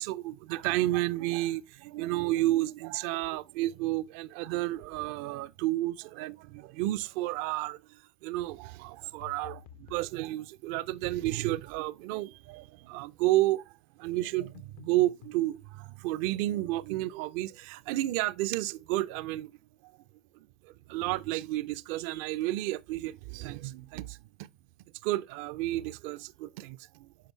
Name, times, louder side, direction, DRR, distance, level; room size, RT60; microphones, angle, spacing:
voice 1, 0.0-13.7 14.0-19.5 20.6-24.5 25.0-27.1, right 16 dB, 60° right, 0.4 m, -31 dB
sound 1, 9.2-10.1 14.5-15.4, left 9 dB, 65° left, 0.7 m, -50 dB
8.4 x 5.4 x 2.9 m
figure-of-eight pair, 70°, 0 cm